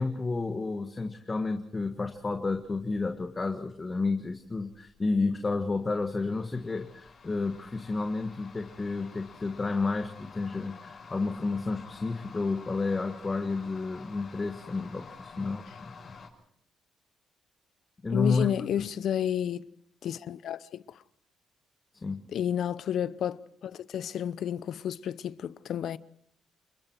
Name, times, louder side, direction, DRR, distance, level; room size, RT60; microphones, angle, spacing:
voice 1, 0.0-16.1 18.0-18.5 21.9-22.2, left 3 dB, 25° left, 1.6 m, -31 dB
sound 1, 1.8-16.3, left 5 dB, 50° left, 6.3 m, -50 dB
voice 2, 18.1-19.7 20.0-21.0 22.3-26.0, left 10 dB, 65° left, 0.8 m, -31 dB
29.5 x 21.0 x 4.6 m
cardioid pair, 90°, 0 cm